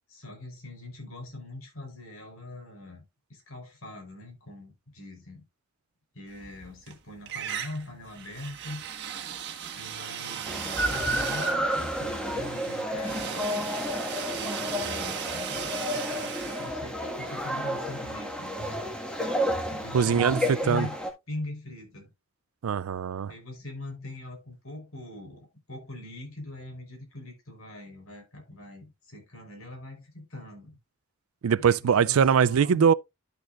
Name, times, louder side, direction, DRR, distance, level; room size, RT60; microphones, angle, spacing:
voice 1, 0.1-5.4 6.1-8.8 9.7-13.8 14.3-18.8 19.7-20.9 21.3-22.1 23.3-30.8 31.6-32.9, left 1 dB, 85° left, 4.1 m, -42 dB
sound 1, 6.3-6.9 7.3-18.1, right 8 dB, 55° right, 1.4 m, -38 dB
sound 2, 10.4-21.1, equal, 5° left, 1.7 m, -31 dB
voice 2, 19.9-20.9 22.6-23.3 31.4-32.9, right 7 dB, 85° right, 0.4 m, -22 dB
12.0 x 6.2 x 2.5 m
head